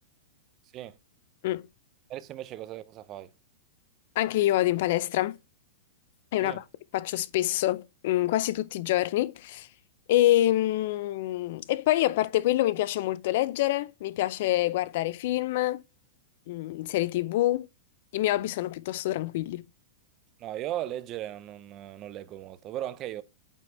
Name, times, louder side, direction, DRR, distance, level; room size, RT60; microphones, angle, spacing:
voice 1, 2.1-3.3 6.4-6.6 20.4-23.2, right 12 dB, 35° right, 0.8 m, -37 dB
voice 2, 4.2-5.4 6.3-6.6 6.9-9.7 10.1-15.8 16.5-17.7 18.1-19.6, left 15 dB, 60° left, 0.5 m, -26 dB
8.8 x 4.4 x 3.2 m
hypercardioid pair, 125°, 0 cm